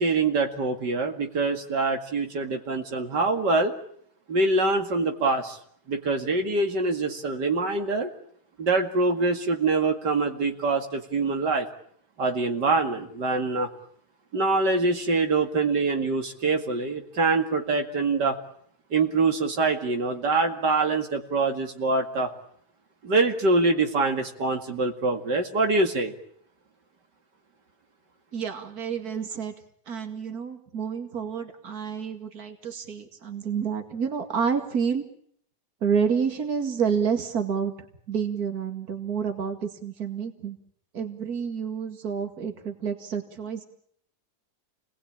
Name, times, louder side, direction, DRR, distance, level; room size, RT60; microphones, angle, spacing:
voice 1, 0.0-3.7 4.3-5.6 5.9-8.1 8.6-11.7 12.2-13.7 14.3-18.4 18.9-22.3 23.0-26.1, right 3 dB, 85° right, 4 dB, 2.8 m, -24 dB
voice 2, 28.3-29.5 29.9-35.0 35.8-37.7 38.1-40.6 40.9-43.7, right 6 dB, 60° right, 6 dB, 2.7 m, -29 dB
28.5 x 20.0 x 8.8 m, 0.66 s
omnidirectional pair, 1.8 m